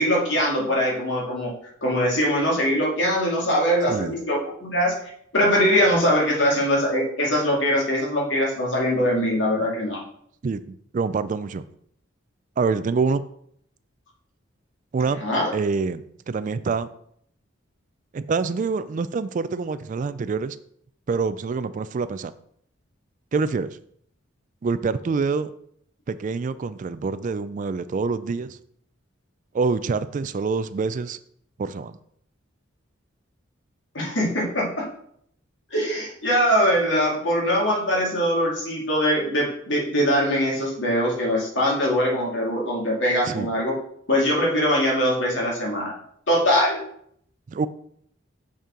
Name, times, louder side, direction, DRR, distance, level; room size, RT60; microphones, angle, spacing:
voice 1, 0.0-1.5 1.8-4.9 5.3-10.0 15.2-15.5 33.9-34.9 35.7-43.8 44.1-46.0 46.3-46.8, equal, 65° left, -3 dB, 2.3 m, -22 dB
voice 2, 10.4-11.6 12.6-13.2 14.9-15.2 15.5-16.9 18.1-20.6 21.1-22.3 23.3-23.8 24.6-25.5 26.1-28.6 29.5-31.2 31.6-32.0 43.3-43.5 47.5-47.7, right 4 dB, 40° right, 14 dB, 0.3 m, -26 dB
6.8 x 5.3 x 3.7 m, 0.68 s
head